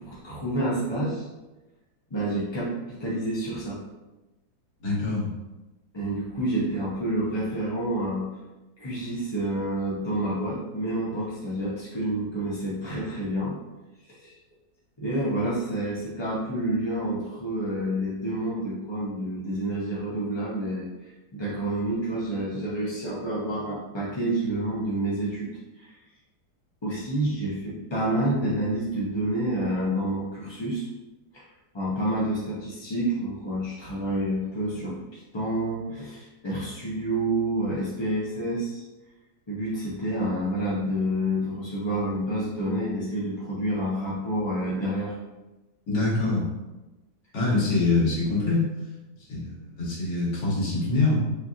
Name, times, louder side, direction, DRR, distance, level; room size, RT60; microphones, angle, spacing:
voice 1, 0.0-1.2 2.1-3.8 5.9-8.3 8.8-13.5 14.1-14.4 15.0-20.9 21.3-25.5 25.8-26.0 26.8-30.9 31.3-31.4 31.7-38.8 39.5-45.2, right 1 dB, 40° left, -7 dB, 0.3 m, -28 dB
voice 2, 4.8-5.3 45.9-46.5 47.3-48.7 49.3-51.2, left 3 dB, 90° left, -5 dB, 2.0 m, -24 dB
5.4 x 2.5 x 2.7 m, 1.1 s
omnidirectional pair, 1.8 m